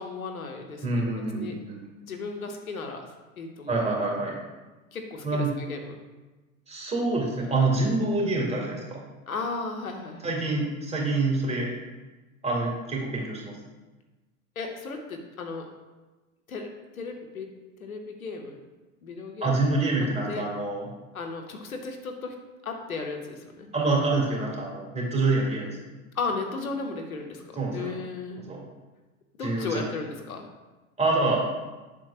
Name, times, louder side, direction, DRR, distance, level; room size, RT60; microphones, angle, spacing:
voice 1, 0.0-0.9 1.3-1.6 2.0-3.1 3.4-3.9 4.9-6.0 9.3-10.3 14.6-15.7 16.5-17.5 17.8-18.6 19.0-19.6 19.9-20.5 21.1-23.7 26.1-28.4 29.4-30.5, left 4 dB, 85° left, 3 dB, 1.0 m, -35 dB
voice 2, 0.8-1.8 3.7-4.3 5.2-5.5 6.7-9.0 10.2-11.7 12.4-13.6 19.4-20.9 23.7-25.8 27.6-27.9 28.5-28.6 29.4-29.8 31.0-31.4, right 2 dB, 15° right, -2 dB, 2.0 m, -26 dB
7.4 x 6.2 x 2.4 m, 1.2 s
figure-of-eight pair, 90°, 41 cm